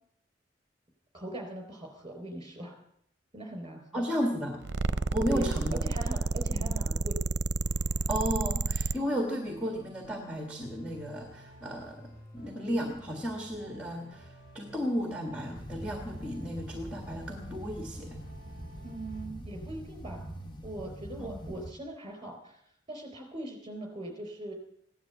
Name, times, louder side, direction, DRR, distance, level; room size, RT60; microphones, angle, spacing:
voice 1, 1.1-2.8 3.3-4.0 5.3-7.2 18.8-20.4 20.6-22.6 22.9-24.5, right 1 dB, 25° right, 4 dB, 4.1 m, -40 dB
voice 2, 3.9-4.6 5.1-5.8 6.5-6.6 8.1-12.0 12.3-18.2 21.2-21.5, equal, 5° right, 2 dB, 1.7 m, -34 dB
sound 1, 4.6-9.0, right 3 dB, 65° right, 0.6 m, -30 dB
sound 2, 7.6-19.3, equal, 50° left, 6.1 m, -52 dB
sound 3, 15.5-21.7, right 1 dB, 25° left, 1.1 m, -43 dB
16.5 x 11.0 x 8.1 m, 0.73 s
head